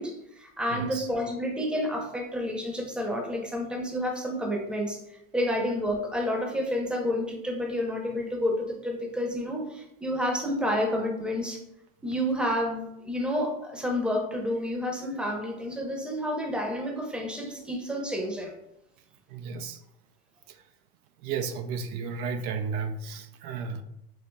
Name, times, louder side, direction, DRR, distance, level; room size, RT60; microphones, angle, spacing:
voice 1, 0.0-11.6 12.0-18.5, equal, ahead, 2 dB, 0.7 m, -30 dB
voice 2, 0.7-1.1 19.3-19.8 21.2-23.8, right 5 dB, 80° right, 7 dB, 0.6 m, -33 dB
5.5 x 2.7 x 2.2 m, 0.82 s
supercardioid pair, 95°, 44 cm